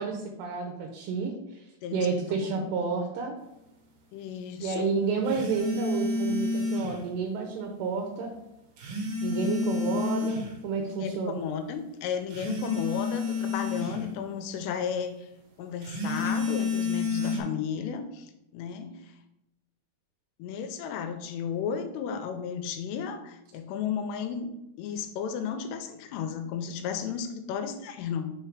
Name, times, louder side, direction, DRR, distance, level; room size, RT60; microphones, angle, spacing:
voice 1, 0.0-1.7 1.9-3.4 4.6-8.3 9.2-11.4, right 4 dB, 85° right, 2 dB, 2.8 m, -30 dB
voice 2, 1.8-2.6 4.1-4.9 9.8-10.3 10.9-15.3 15.6-19.1 20.4-24.5 24.8-28.3, left 7 dB, 85° left, 8 dB, 2.7 m, -34 dB
sound 1, 5.3-7.0 8.8-10.5 12.3-14.0 15.8-17.4, left 3 dB, 65° right, 2.6 m, -30 dB
6.2 x 3.3 x 4.9 m, 0.89 s
omnidirectional pair, 4.8 m